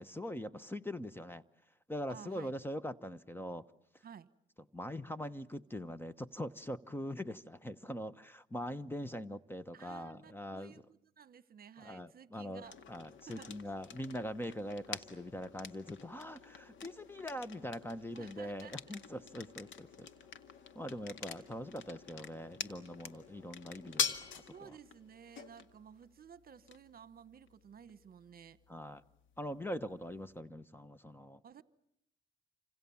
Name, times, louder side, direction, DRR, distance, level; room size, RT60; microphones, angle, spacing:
voice 1, 0.0-1.4 1.9-3.6 4.7-10.7 11.8-20.1 20.7-24.7 28.7-29.0 29.4-31.4, equal, 10° left, 1.1 m, -42 dB
voice 2, 2.1-2.5 4.0-4.3 9.7-12.8 13.3-13.6 18.1-18.8 24.5-28.6 31.4-31.6, right 8 dB, 50° right, 1.3 m, -54 dB
sound 1, 12.6-30.4, left 7 dB, 75° left, 2.0 m, -46 dB
28.5 x 26.0 x 7.2 m
cardioid pair, 90°, 20 cm